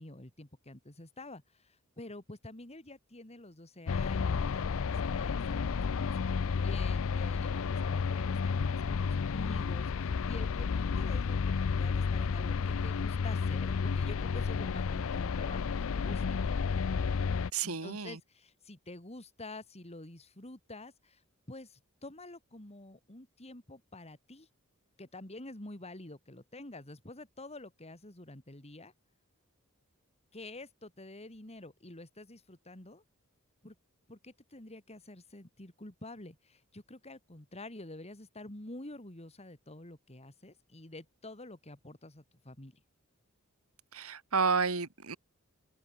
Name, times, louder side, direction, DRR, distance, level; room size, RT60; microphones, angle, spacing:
voice 1, 0.0-5.7 5.9-15.6 15.9-16.6 17.6-21.2 21.5-24.5 25.0-28.9 30.3-33.0 33.6-33.7 34.1-42.7, left 2 dB, 30° left, 3.0 m, -48 dB
sound 1, 3.9-17.5, left 5 dB, 70° left, 0.5 m, -31 dB
voice 2, 17.5-18.2 43.9-45.2, right 5 dB, 80° right, 2.3 m, -31 dB
head